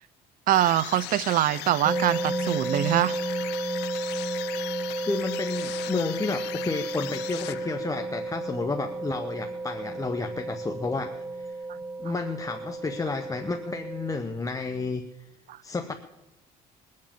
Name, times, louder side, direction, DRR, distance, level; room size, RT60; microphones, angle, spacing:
sound 1, 0.5-8.0, left 16 dB, 85° left, 0.6 m, -38 dB
voice 1, 0.5-3.1 15.5-15.6, right 13 dB, 55° right, 19 dB, 0.5 m, -23 dB
sound 2, 1.8-14.2, right 2 dB, 20° right, 1.5 m, -33 dB
voice 2, 5.0-11.7 12.0-15.0 15.6-15.9, left 3 dB, 20° left, 6 dB, 0.9 m, -31 dB
21.0 x 7.5 x 7.4 m, 0.93 s
cardioid pair, 110°, 17 cm